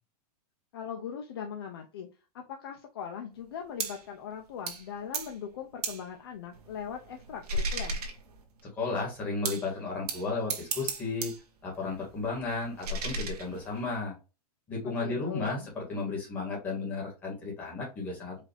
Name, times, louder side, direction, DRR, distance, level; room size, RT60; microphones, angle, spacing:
voice 1, 0.7-2.1 2.3-8.0 14.8-15.7, left 7 dB, 40° left, 3 dB, 0.6 m, -40 dB
sound 1, 3.8-4.1 4.7-4.9 5.1-5.4 5.8-6.1 6.5-8.6 9.4-9.7 10.1-11.4 11.7-14.0, right 3 dB, 75° right, 1.5 m, -36 dB
voice 2, 8.7-11.3 11.6-14.1 14.7-18.4, left 3 dB, 10° left, -4 dB, 1.6 m, -34 dB
4.9 x 2.7 x 3.3 m, 0.30 s
supercardioid pair, 180°, 20 cm